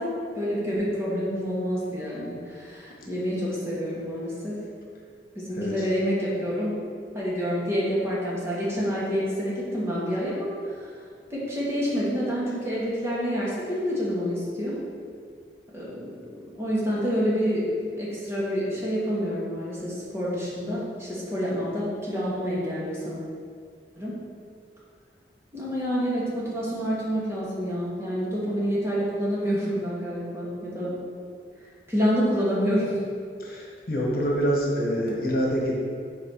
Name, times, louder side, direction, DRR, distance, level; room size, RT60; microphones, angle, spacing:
voice 1, 0.0-4.6 5.4-6.8 7.1-11.0 11.3-14.8 15.7-23.2 24.0-24.2 25.5-31.0 31.9-33.0, equal, 15° right, -8 dB, 2.2 m, -28 dB
voice 2, 33.4-35.7, equal, 55° left, -2 dB, 1.4 m, -26 dB
8.5 x 4.5 x 5.9 m, 2.1 s
head